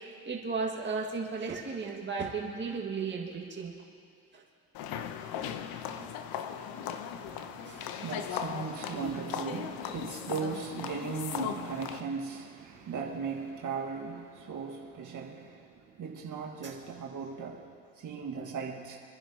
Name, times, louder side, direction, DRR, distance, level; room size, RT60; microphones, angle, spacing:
voice 1, 0.0-3.7 4.3-4.4 6.0-6.1 7.3-7.4 7.7-7.9 16.6-16.7, right 4 dB, 25° right, -2 dB, 1.9 m, -35 dB
sound 1, 4.7-12.0, left 8 dB, 60° left, 0.9 m, -38 dB
voice 2, 7.1-19.0, right 5 dB, 50° right, -1 dB, 1.8 m, -38 dB
26.5 x 10.5 x 2.9 m, 2.3 s
hypercardioid pair, 75°, 40 cm